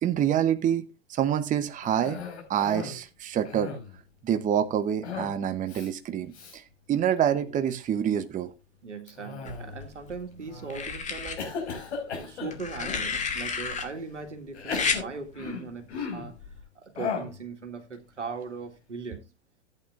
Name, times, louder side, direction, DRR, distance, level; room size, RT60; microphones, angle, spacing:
voice 1, 0.0-2.2 2.5-3.7 4.2-6.6 6.9-8.5, right 9 dB, 20° right, 0.9 m, -26 dB
Cough, 1.8-3.0 3.3-4.0 5.0-5.4 5.7-5.9 6.3-6.6 7.1-7.5 9.1-9.9 10.5-10.9 11.4-13.1 13.8-13.9 14.5-16.3 16.9-17.4, left 5 dB, 70° left, 4.9 m, -36 dB
voice 2, 8.8-11.8 12.1-16.4 16.8-19.3, right 4 dB, 90° right, 2.0 m, -39 dB
sound 1, 9.5-10.1 10.7-11.4 12.5-13.8 14.7-15.0 16.4-16.6, left 5 dB, 20° left, 1.9 m, -31 dB
14.5 x 8.8 x 2.5 m
hypercardioid pair, 100°, 35 cm